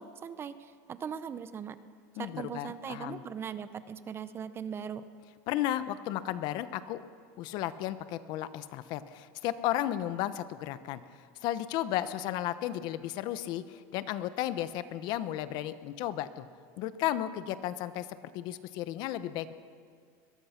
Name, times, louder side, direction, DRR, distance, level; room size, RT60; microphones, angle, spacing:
voice 1, 0.0-1.8 2.2-5.0, right 7 dB, 30° right, 12 dB, 1.0 m, -39 dB
voice 2, 2.2-3.2 5.5-7.0 7.4-16.5 16.8-18.1 18.3-19.5, left 13 dB, 60° left, 13 dB, 1.0 m, -34 dB
21.5 x 21.5 x 6.0 m, 2.1 s
supercardioid pair, 130°, 9 cm